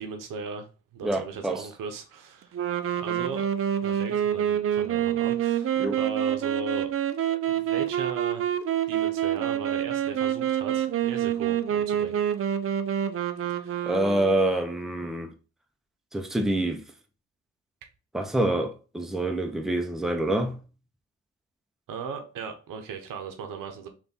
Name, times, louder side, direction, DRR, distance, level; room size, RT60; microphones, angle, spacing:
voice 1, 0.0-2.6 3.0-3.5 3.8-6.9 7.3-8.5 8.9-12.2 13.6-13.9 21.9-23.9, right 5 dB, 70° right, 0.8 m, -37 dB
voice 2, 1.0-1.6 5.8-6.0 13.9-15.3 16.1-16.8 18.1-20.5, right 1 dB, ahead, 0.7 m, -26 dB
sound 1, 2.5-14.4, right 10 dB, 40° right, 0.5 m, -27 dB
3.4 x 2.5 x 4.2 m
supercardioid pair, 50°, 33 cm